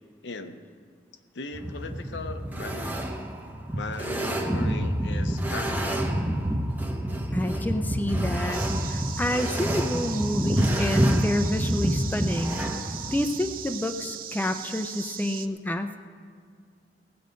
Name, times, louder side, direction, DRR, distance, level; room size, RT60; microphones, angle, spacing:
voice 1, 0.2-0.6 1.3-2.9 3.7-6.2, left 3 dB, 90° left, 7 dB, 0.8 m, -38 dB
sound 1, 1.5-13.2, right 1 dB, 10° right, 0.8 m, -27 dB
voice 2, 7.3-12.6 13.1-16.0, left 1 dB, 10° left, 6 dB, 0.5 m, -29 dB
sound 2, 8.5-15.5, right 10 dB, 50° right, 0.5 m, -39 dB
18.5 x 7.8 x 5.2 m, 2.1 s
head